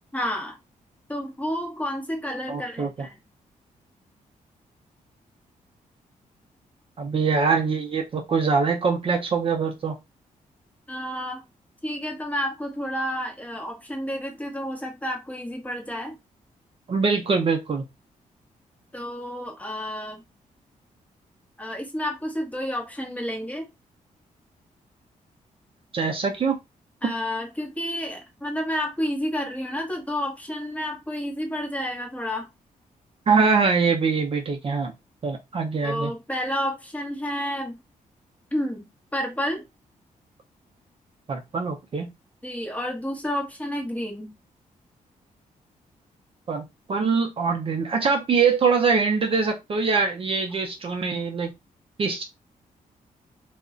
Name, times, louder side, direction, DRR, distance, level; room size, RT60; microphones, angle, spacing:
voice 1, 0.1-0.6 1.1-3.2 10.9-11.4 11.8-16.2 18.9-20.2 21.6-23.7 27.0-32.5 35.8-37.8 38.5-38.8 39.1-39.6 42.4-44.3, equal, 10° left, 1.0 m, -30 dB
voice 2, 2.5-2.9 7.0-10.0 16.9-17.8 25.9-26.6 27.0-27.1 33.3-34.9 35.2-36.1 41.3-42.1 46.5-51.5 52.0-52.2, right 5 dB, 40° right, 0.5 m, -23 dB
2.3 x 2.1 x 3.6 m
cardioid pair, 110°, 14 cm